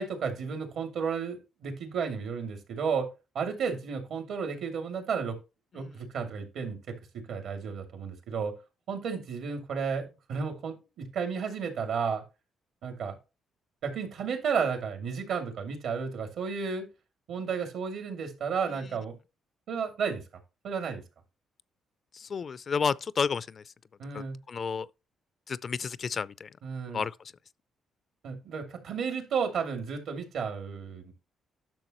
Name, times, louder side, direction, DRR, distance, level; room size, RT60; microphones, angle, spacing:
voice 1, 0.0-3.1 3.3-5.4 5.7-8.5 8.9-12.2 12.8-13.2 13.8-16.9 17.3-19.1 19.7-20.2 20.6-21.0 24.0-24.4 26.6-27.0 28.2-31.1, right 6 dB, 75° right, 2.5 m, -33 dB
voice 2, 22.1-23.6 24.1-24.9 25.5-26.5 26.9-27.1, left 6 dB, 45° left, 0.4 m, -31 dB
10.5 x 6.6 x 3.0 m
cardioid pair, 90°, 0 cm